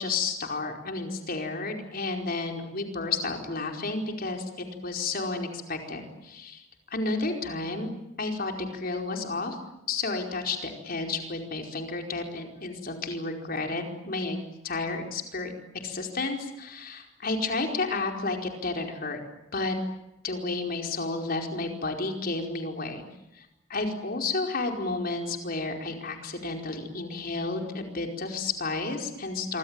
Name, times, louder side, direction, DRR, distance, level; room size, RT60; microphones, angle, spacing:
voice 1, 0.0-7.9 8.2-9.6 9.9-14.4 14.6-15.5 15.8-19.2 19.5-19.7 20.2-23.0 23.3-23.4 23.7-29.6, left 3 dB, 50° left, 3 dB, 4.8 m, -31 dB
27.0 x 24.5 x 9.0 m, 0.90 s
head